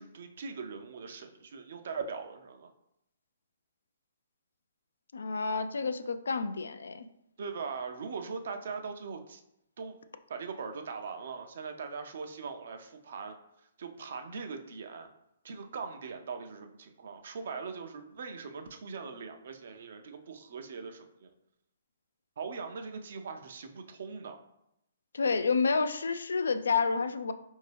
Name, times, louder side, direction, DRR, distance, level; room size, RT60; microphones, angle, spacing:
voice 1, 0.0-2.7 7.4-9.4 9.8-10.0 10.3-13.3 13.8-15.1 15.4-21.3 22.4-24.4, right 5 dB, 60° right, 6 dB, 0.5 m, -40 dB
voice 2, 5.1-7.1 25.1-27.3, left 4 dB, 90° left, 10 dB, 0.3 m, -29 dB
4.4 x 2.7 x 3.3 m, 0.81 s
hypercardioid pair, 160°, 0 cm